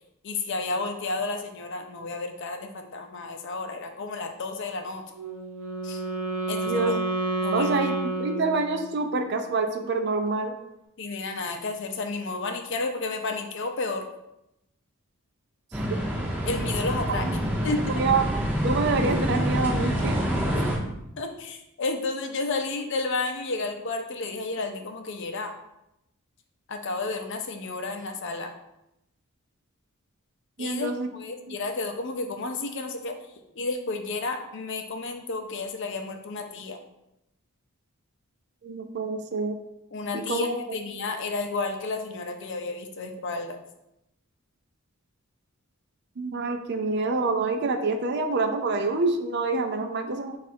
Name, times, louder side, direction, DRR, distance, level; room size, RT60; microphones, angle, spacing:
voice 1, 0.2-5.0 5.8-6.0 6.5-6.9 7.4-7.7 11.0-14.1 16.4-17.3 17.6-17.8 20.5-20.7 21.2-25.5 26.7-28.5 30.6-33.2 33.6-36.8 39.9-43.6, left 3 dB, 55° left, 5 dB, 0.5 m, -31 dB
Wind instrument woodwind instrument, 5.1-9.1, right 2 dB, 85° right, 0.8 m, -29 dB
voice 2, 7.5-10.6 17.2-18.2 18.6-20.2 30.6-31.1 31.5-31.6 38.6-39.6 40.1-40.6 46.2-50.4, right 3 dB, 50° right, 6 dB, 0.5 m, -27 dB
sound 1, 15.7-20.8, equal, 10° right, 0.6 m, -27 dB
4.6 x 2.4 x 4.2 m, 0.86 s
head